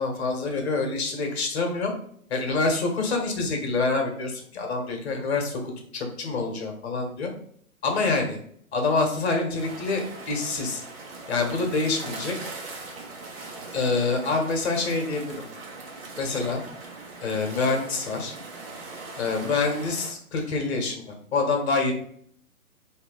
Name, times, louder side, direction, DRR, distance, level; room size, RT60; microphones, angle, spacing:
voice 1, 0.0-1.9 2.3-7.3 7.8-8.4 8.7-10.8 11.3-12.3 13.7-15.3 16.2-16.6 17.2-18.3 19.2-21.0 21.3-21.9, left 3 dB, 45° left, 3 dB, 1.4 m, -26 dB
sound 1, 9.6-20.1, right 3 dB, 40° right, 1.2 m, -40 dB
4.3 x 2.9 x 3.9 m, 0.64 s
figure-of-eight pair, 135°, 44 cm